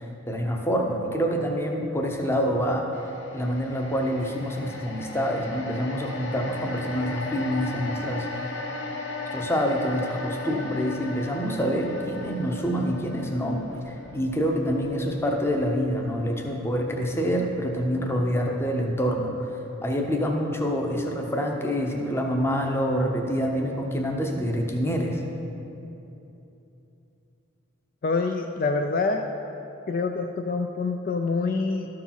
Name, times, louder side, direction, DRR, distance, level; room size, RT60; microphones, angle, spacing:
voice 1, 0.0-2.9 3.3-8.5 9.3-19.5 19.8-25.2, equal, 10° left, 1 dB, 0.7 m, -26 dB
sound 1, 2.9-17.3 17.6-17.8, left 2 dB, 60° left, 0.8 m, -37 dB
voice 2, 28.0-29.2 29.9-31.9, left 4 dB, 45° left, 4 dB, 0.3 m, -26 dB
12.5 x 4.8 x 5.7 m, 2.9 s
head